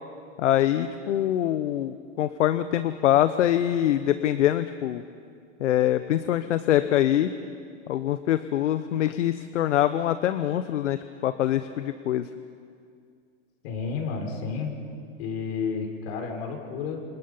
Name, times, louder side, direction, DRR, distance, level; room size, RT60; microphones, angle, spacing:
voice 1, 0.4-5.0 5.6-7.3 7.9-11.0 11.2-12.3, left 12 dB, 80° left, 11 dB, 1.1 m, -24 dB
voice 2, 13.6-14.7 15.2-17.0, left 5 dB, 60° left, 2 dB, 6.3 m, -31 dB
28.0 x 26.0 x 5.7 m, 2.2 s
hypercardioid pair, 120°, 36 cm